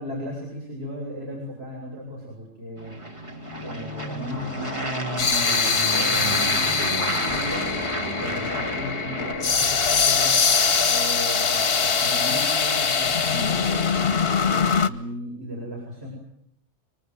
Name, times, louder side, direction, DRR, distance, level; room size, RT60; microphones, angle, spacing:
voice 1, 0.0-3.0 3.6-10.3 10.8-14.1 14.8-16.1, equal, 60° right, -2 dB, 8.3 m, -36 dB
sound 1, 2.8-9.3, equal, 25° right, 3.7 m, -30 dB
sound 2, 4.3-14.9, left 5 dB, 55° left, 1.4 m, -23 dB
25.0 x 25.0 x 8.0 m, 0.72 s
omnidirectional pair, 1.2 m